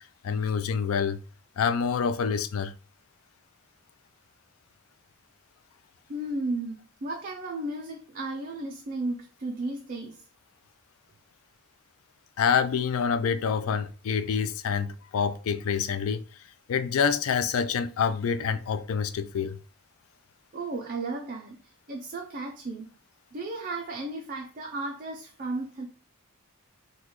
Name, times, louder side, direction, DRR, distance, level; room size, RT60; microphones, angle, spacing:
voice 1, 0.2-1.2 1.6-2.7 12.4-16.2 16.7-19.6, left 6 dB, 70° left, 0.3 m, -27 dB
voice 2, 6.1-10.2 20.5-22.9 23.3-25.9, right 2 dB, 40° right, 0.4 m, -34 dB
3.8 x 2.2 x 3.0 m
head